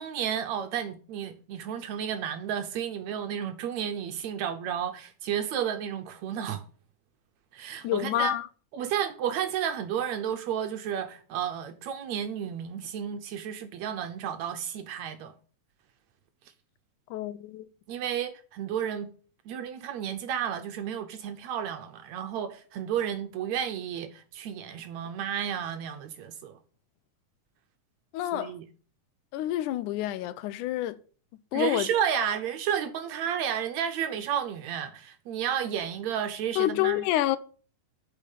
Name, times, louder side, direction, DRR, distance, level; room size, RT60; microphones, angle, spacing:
voice 1, 0.0-6.6 7.5-8.3 8.7-15.3 17.9-19.1 19.5-26.6 28.3-28.6 31.5-37.0, right 9 dB, 70° right, 2.0 m, -32 dB
voice 2, 7.8-8.5 17.1-17.7 28.1-28.5 29.3-31.0 31.5-31.9 32.1-32.3 36.6-37.4, left 13 dB, 85° left, 2.2 m, -28 dB
9.1 x 5.8 x 8.0 m
omnidirectional pair, 3.5 m